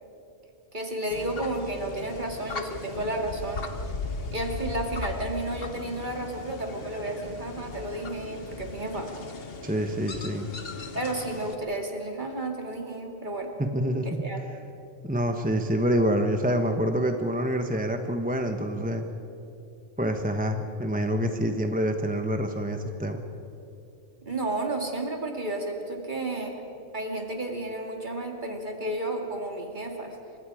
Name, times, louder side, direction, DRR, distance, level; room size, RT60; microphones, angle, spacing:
voice 1, 0.7-3.7 4.3-9.1 10.9-13.6 14.0-14.4 24.3-26.6 26.9-30.2, right 1 dB, 40° right, 2 dB, 2.6 m, -32 dB
sound 1, 1.1-11.6, left 3 dB, 50° left, 1.4 m, -38 dB
voice 2, 9.6-10.5 13.6-14.2 15.0-19.0 20.0-23.2, equal, 10° right, 5 dB, 0.9 m, -27 dB
28.5 x 24.0 x 4.9 m, 2.8 s
omnidirectional pair, 1.3 m